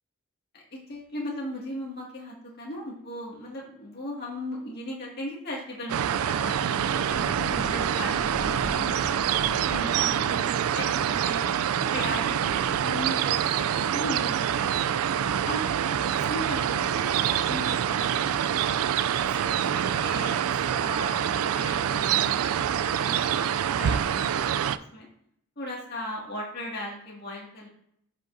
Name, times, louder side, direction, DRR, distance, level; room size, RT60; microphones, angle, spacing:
voice 1, 0.5-6.6 7.0-11.4 11.9-15.0 15.4-15.6 16.0-18.4 19.2-25.1 25.6-27.7, left 1 dB, 45° left, -3 dB, 2.0 m, -38 dB
sound 1, 5.9-24.8, right 9 dB, 80° right, 0.3 m, -26 dB
sound 2, 7.0-10.2, right 1 dB, 35° right, 1.8 m, -39 dB
10.0 x 5.3 x 2.6 m, 0.70 s
head